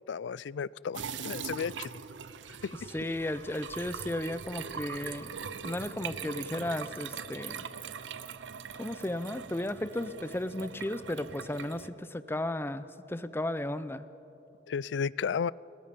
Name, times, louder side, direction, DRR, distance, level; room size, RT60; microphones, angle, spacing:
voice 1, 0.1-1.9 2.6-2.7 14.7-15.5, left 6 dB, 75° left, 22 dB, 0.4 m, -33 dB
sound 1, 0.9-11.9, right 6 dB, 85° right, 0.7 m, -41 dB
voice 2, 2.9-5.3 5.6-7.7 8.8-14.0, left 1 dB, 15° left, 13 dB, 0.6 m, -34 dB
28.0 x 20.5 x 5.4 m, 3.0 s
head